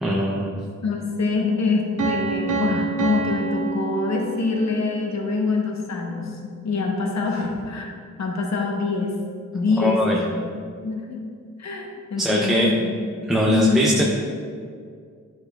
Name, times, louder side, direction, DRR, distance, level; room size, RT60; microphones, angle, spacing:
voice 1, 0.0-0.6 9.8-10.2 12.2-12.7 13.3-14.0, equal, ahead, -3 dB, 0.5 m, -21 dB
voice 2, 0.8-7.9 8.2-9.2 9.5-10.4 10.8-11.2 11.6-13.9, left 3 dB, 60° left, 0 dB, 0.9 m, -24 dB
Piano, 2.0-4.8, right 5 dB, 75° right, 0.9 m, -27 dB
11.0 x 4.6 x 2.2 m, 2.2 s
wide cardioid pair, 175°, 31 cm